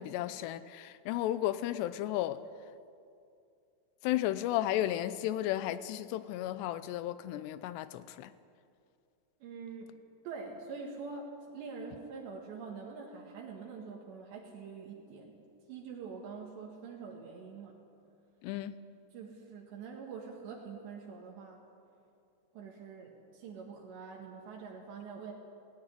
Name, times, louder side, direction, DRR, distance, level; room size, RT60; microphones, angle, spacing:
voice 1, 0.0-2.4 4.0-8.3 18.4-18.8, left 13 dB, 85° left, 2.8 m, -33 dB
voice 2, 9.4-9.9 10.2-15.3 15.7-17.8 19.1-21.6 22.5-25.3, right 5 dB, 80° right, 4.1 m, -45 dB
18.0 x 16.0 x 9.8 m
omnidirectional pair, 5.0 m